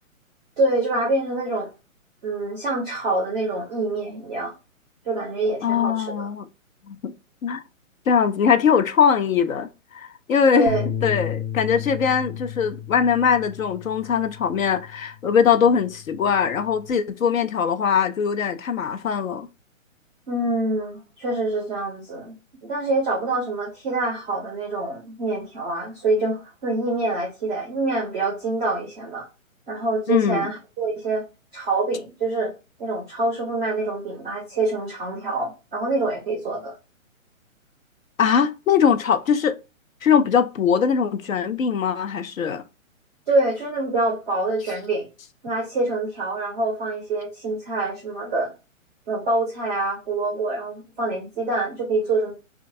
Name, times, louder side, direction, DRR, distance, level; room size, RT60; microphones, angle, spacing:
voice 1, 0.6-1.7 2.2-4.5 5.0-6.3 10.5-10.8 20.3-22.3 22.6-29.3 29.7-31.2 31.5-32.5 32.8-36.7 43.3-45.0 45.4-48.5 49.1-52.3, right 2 dB, 5° right, 0.4 m, -25 dB
voice 2, 5.6-6.5 6.9-7.1 7.4-7.6 8.1-19.5 30.1-30.5 38.2-39.6 40.0-42.6, left 7 dB, 75° left, 0.7 m, -21 dB
Bass guitar, 10.7-15.1 15.5-16.9, left 8 dB, 50° left, 0.9 m, -34 dB
4.5 x 2.5 x 2.5 m
hypercardioid pair, 140°, 41 cm